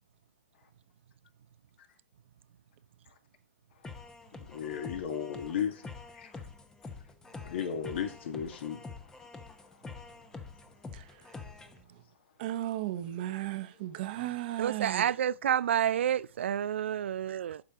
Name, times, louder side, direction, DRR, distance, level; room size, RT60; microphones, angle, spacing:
sound 1, 3.8-11.8, left 3 dB, 10° left, 1.0 m, -46 dB
voice 1, 4.4-6.4 7.4-8.9 9.9-10.0, left 8 dB, 60° left, 1.9 m, -35 dB
voice 2, 12.4-15.0, right 14 dB, 45° right, 1.1 m, -35 dB
voice 3, 14.6-17.6, right 9 dB, 65° right, 0.3 m, -29 dB
12.0 x 4.8 x 3.7 m
hypercardioid pair, 130°, 7 cm